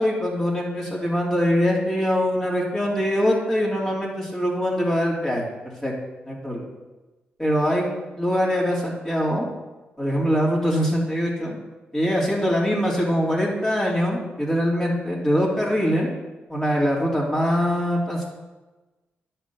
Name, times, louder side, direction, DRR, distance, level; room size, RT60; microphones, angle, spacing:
voice 1, 0.0-5.9 6.3-6.6 7.4-7.9 8.2-9.5 10.0-11.6 11.9-16.1 16.5-18.3, equal, 15° left, -4 dB, 3.4 m, -23 dB
10.0 x 4.6 x 7.1 m, 1.2 s
supercardioid pair, 55°, 4 cm